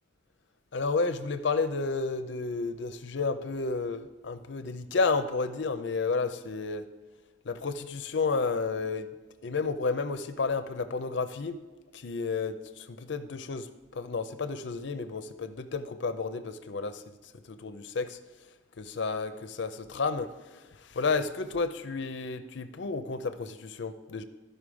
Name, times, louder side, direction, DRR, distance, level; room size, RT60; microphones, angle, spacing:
voice 1, 0.7-6.8 7.5-9.1 9.4-11.6 11.9-13.7 13.9-17.0 17.5-18.2 18.8-20.3 20.9-24.2, left 4 dB, 65° left, 11 dB, 0.5 m, -31 dB
13.0 x 5.5 x 4.8 m, 1.2 s
head